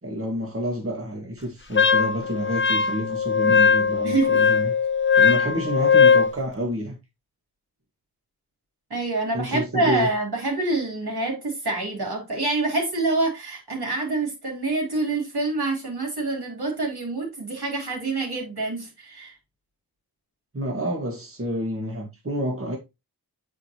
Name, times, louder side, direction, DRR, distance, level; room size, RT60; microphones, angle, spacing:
voice 1, 0.0-4.7 5.2-7.0 9.3-10.1 20.5-22.8, equal, 35° right, 1.9 m, -29 dB
Wind instrument woodwind instrument, 1.7-6.3, left 6 dB, 30° left, 0.5 m, -19 dB
voice 2, 4.0-4.4 8.9-19.3, right 2 dB, 75° right, 3.8 m, -26 dB
9.1 x 4.9 x 3.0 m
wide cardioid pair, 65°, 39 cm